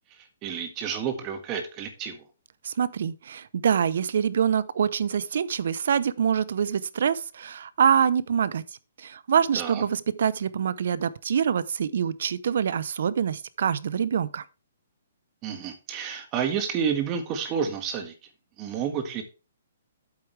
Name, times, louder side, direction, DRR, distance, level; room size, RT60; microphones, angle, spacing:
voice 1, 0.4-2.2 9.5-9.8 15.4-18.1 18.6-19.2, right 7 dB, 25° right, 1.7 m, -30 dB
voice 2, 2.6-8.6 9.0-14.4, right 7 dB, 65° right, 0.7 m, -25 dB
8.4 x 8.2 x 3.3 m
hypercardioid pair, 160°, 0 cm